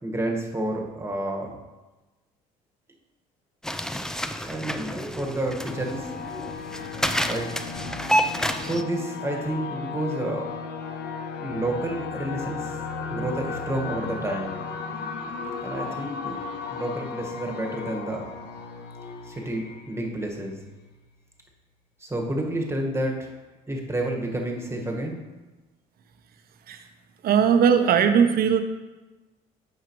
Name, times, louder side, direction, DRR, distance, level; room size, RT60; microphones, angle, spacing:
voice 1, 0.0-1.6 4.4-6.1 7.2-7.5 8.6-10.5 11.4-12.7 13.1-14.6 15.6-16.4 16.7-18.3 19.2-20.6 22.0-23.3 23.7-25.2, right 1 dB, 15° right, 0 dB, 1.6 m, -30 dB
sound 1, 3.6-8.8, equal, 5° left, 0.5 m, -29 dB
sound 2, 5.6-21.0, left 5 dB, 60° left, 0.9 m, -35 dB
voice 2, 27.2-28.6, right 7 dB, 55° right, 8 dB, 0.8 m, -19 dB
9.3 x 5.7 x 3.1 m, 1.1 s
hypercardioid pair, 65°, 19 cm